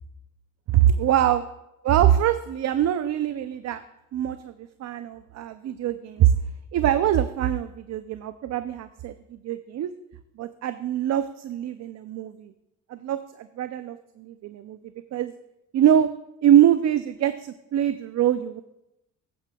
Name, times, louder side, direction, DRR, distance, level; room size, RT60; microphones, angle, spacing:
voice 1, 0.7-1.4 1.8-3.8 4.1-4.5 4.8-6.3 6.7-9.9 10.4-12.5 12.9-14.8 15.1-15.3 15.7-16.1 16.4-18.6, right 10 dB, 60° right, 11 dB, 0.5 m, -23 dB
15.5 x 9.2 x 2.3 m, 0.88 s
cardioid pair, 90°, 30 cm